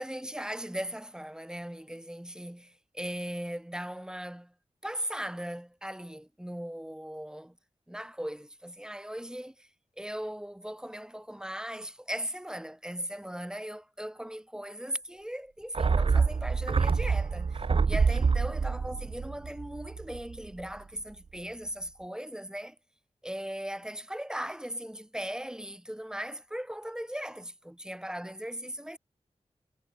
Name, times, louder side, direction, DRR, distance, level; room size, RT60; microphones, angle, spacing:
voice 1, 0.0-4.5 4.8-7.6 7.9-9.7 10.0-17.6 17.9-22.8 23.2-29.0, equal, 5° right, 0.8 m, -38 dB
sound 1, 15.7-20.4 20.6-20.7, right 5 dB, 50° right, 0.6 m, -26 dB
wide cardioid pair, 95°, 12 cm